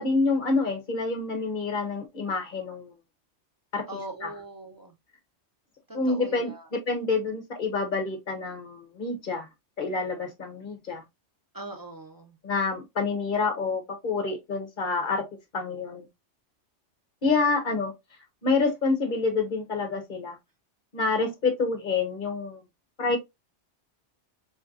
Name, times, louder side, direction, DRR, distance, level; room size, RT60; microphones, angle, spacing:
voice 1, 0.0-2.9 3.7-3.8 4.2-4.3 5.9-9.5 9.8-11.0 12.4-15.3 15.5-16.1 17.2-17.9 18.4-20.4 20.9-22.6 23.0-23.2, left 4 dB, 45° left, 1.0 m, -27 dB
voice 2, 3.9-4.9 5.9-6.7 11.5-12.4, right 1 dB, 20° right, 0.7 m, -41 dB
4.3 x 2.6 x 2.5 m
omnidirectional pair, 1.2 m